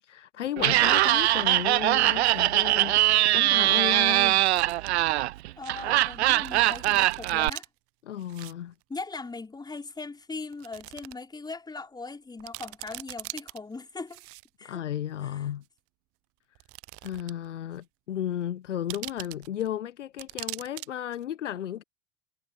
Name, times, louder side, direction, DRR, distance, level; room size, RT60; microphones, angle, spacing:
voice 1, 0.0-4.4 8.1-8.7 14.6-15.6 17.0-21.8, left 11 dB, 70° left, 1.1 m, -34 dB
Laughter, 0.6-7.5, right 16 dB, 60° right, 0.5 m, -22 dB
sound 1, 2.7-2.8 4.3-4.9 5.4-5.5 6.4-7.7 8.2-8.5 8.8-8.9 9.8-9.9 10.5-11.1 11.5-11.6 12.1-12.2 12.4-13.6 14.1-14.7 15.6-15.7 16.6-17.5 17.8-17.9 18.9-19.7 20.2-20.9 21.1-21.2, right 23 dB, 35° right, 0.9 m, -41 dB
voice 2, 5.6-7.7 8.9-14.2 14.6-14.8 15.2-15.5, left 3 dB, 10° left, 4.4 m, -39 dB
figure-of-eight pair, 80°, 38 cm